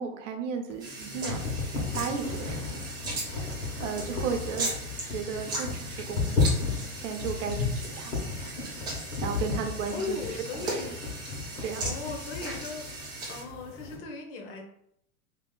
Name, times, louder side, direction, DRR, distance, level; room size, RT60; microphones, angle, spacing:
voice 1, 0.0-1.4 1.9-2.8 3.8-4.7 5.1-6.5 6.9-8.1 9.2-10.2 10.7-10.8 11.6-11.8, right 6 dB, 60° right, 5 dB, 0.8 m, -34 dB
sound 1, 0.7-14.0, left 4 dB, 70° left, 1.4 m, -34 dB
sound 2, 0.8-13.4, right 2 dB, 10° right, 0.4 m, -38 dB
voice 2, 9.9-11.0 11.8-14.6, left 4 dB, 40° left, 2 dB, 0.9 m, -38 dB
3.0 x 2.8 x 3.8 m, 0.74 s
hypercardioid pair, 140°, 43 cm